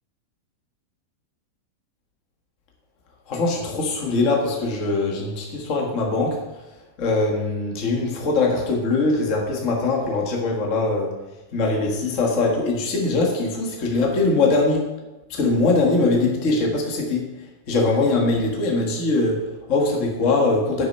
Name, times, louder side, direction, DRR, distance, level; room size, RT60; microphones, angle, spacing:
voice 1, 3.3-6.4 7.0-11.2 11.5-14.8 15.3-17.2 17.7-20.9, left 3 dB, 55° left, -1 dB, 0.8 m, -22 dB
10.0 x 6.5 x 5.4 m, 1.1 s
omnidirectional pair, 4.0 m